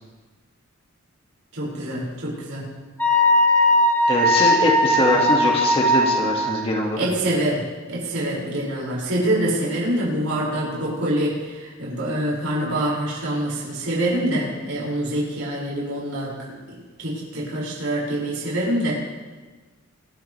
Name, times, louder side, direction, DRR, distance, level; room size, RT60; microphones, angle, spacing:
voice 1, 1.5-2.6 7.0-7.6 7.9-16.3 17.0-18.9, right 1 dB, 70° right, -6 dB, 6.0 m, -25 dB
Wind instrument woodwind instrument, 3.0-6.5, left 1 dB, 10° left, 4.8 m, -18 dB
voice 2, 4.1-7.0, left 1 dB, 30° left, -1 dB, 2.0 m, -22 dB
24.0 x 13.0 x 3.4 m, 1.4 s
head